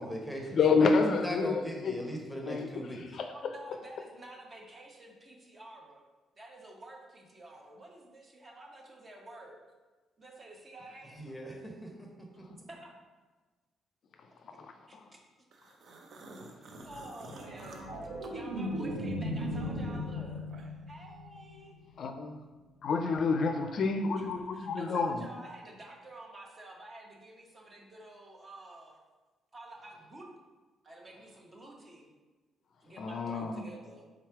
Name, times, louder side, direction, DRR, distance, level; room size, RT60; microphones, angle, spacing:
voice 1, 0.0-3.0 11.2-12.1 12.4-12.5, equal, 5° left, 1 dB, 0.9 m, -39 dB
voice 2, 0.5-1.9 2.5-3.3 14.6-15.0 22.0-22.4 22.8-25.2 33.0-33.6, left 4 dB, 60° left, 6 dB, 0.4 m, -29 dB
voice 3, 3.3-6.0 6.3-9.6 10.2-11.1 12.0-12.9 14.6-15.2 16.8-20.5 20.9-21.7 24.5-29.0 29.5-30.3 30.8-32.1 32.8-34.1, right 1 dB, 35° right, 0 dB, 1.0 m, -50 dB
sound 1, 15.5-19.1 19.4-20.9, right 2 dB, 65° right, 0.6 m, -51 dB
sound 2, 17.3-21.8 24.2-24.4, equal, 80° right, 0.9 m, -37 dB
3.6 x 3.2 x 4.6 m, 1.3 s
cardioid pair, 90°, 0 cm